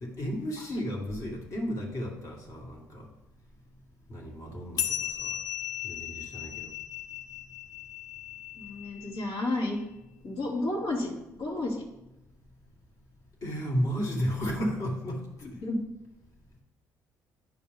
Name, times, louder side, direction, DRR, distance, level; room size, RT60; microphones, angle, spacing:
voice 1, 0.0-3.1 4.1-5.4 5.8-6.7 13.4-15.6, equal, 50° left, 0 dB, 2.0 m, -33 dB
sound 1, 4.8-9.6, left 11 dB, 65° left, 0.5 m, -37 dB
voice 2, 8.5-9.8 10.2-11.8 15.4-15.8, left 2 dB, 85° left, -5 dB, 2.7 m, -32 dB
10.0 x 4.7 x 3.5 m, 0.92 s
cardioid pair, 115°, 7 cm